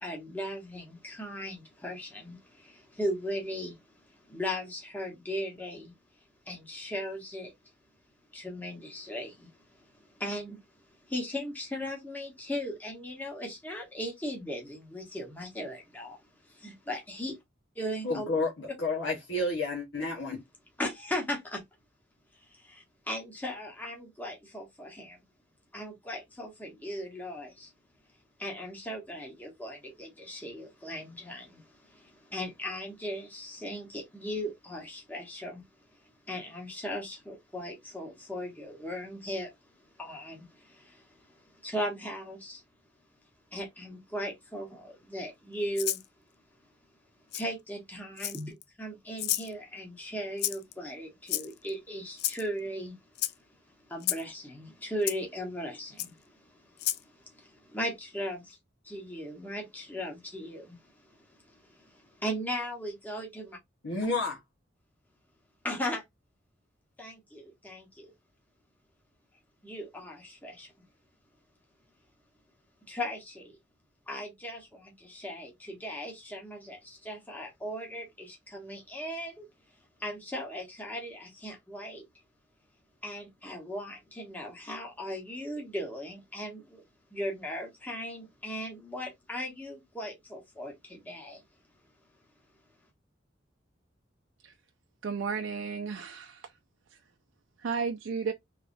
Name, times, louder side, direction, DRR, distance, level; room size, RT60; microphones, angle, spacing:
voice 1, 0.0-3.8 4.1-5.9 6.5-7.5 8.3-10.6 11.1-16.2 16.4-17.4 17.8-18.3 20.8-21.6 22.3-25.2 25.7-27.7 28.4-35.6 36.0-39.5 40.0-42.6 43.5-46.0 47.3-53.0 53.9-58.6 58.8-63.6 65.6-66.0 67.0-68.1 69.6-70.7 72.9-73.6 74.1-79.5 80.0-82.0 83.0-86.8 87.1-91.4, equal, 10° left, 1.0 m, -38 dB
voice 2, 18.0-20.4 63.8-64.4, left 2 dB, 80° left, 1.0 m, -30 dB
Rattle (instrument), 45.7-46.0 47.3-47.4 48.2-48.6 49.2-49.5 50.4-50.7 51.3-51.7 52.2-52.4 53.1-53.3 54.0-54.2 55.1-55.2 56.0-56.1 56.8-57.0, left 14 dB, 55° left, 0.3 m, -31 dB
voice 3, 95.0-96.5 97.6-98.3, right 5 dB, 85° right, 0.4 m, -33 dB
3.3 x 3.2 x 2.6 m
head